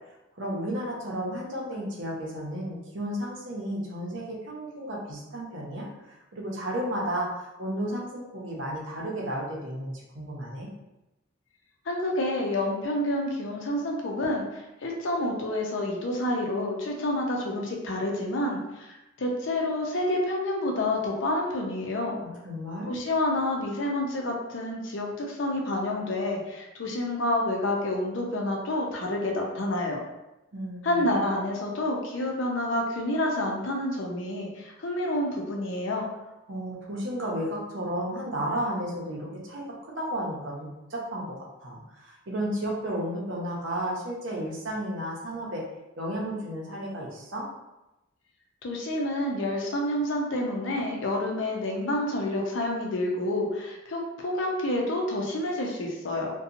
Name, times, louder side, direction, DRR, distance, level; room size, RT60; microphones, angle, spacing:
voice 1, 0.4-5.9 6.3-10.7 22.2-22.9 30.5-31.2 36.5-41.4 41.6-45.6 46.0-47.5, equal, 70° right, -3 dB, 0.7 m, -33 dB
voice 2, 11.9-22.2 22.9-30.0 30.8-36.1 48.6-56.3, left 1 dB, 70° left, 0 dB, 0.5 m, -28 dB
2.8 x 2.2 x 2.5 m, 0.96 s
head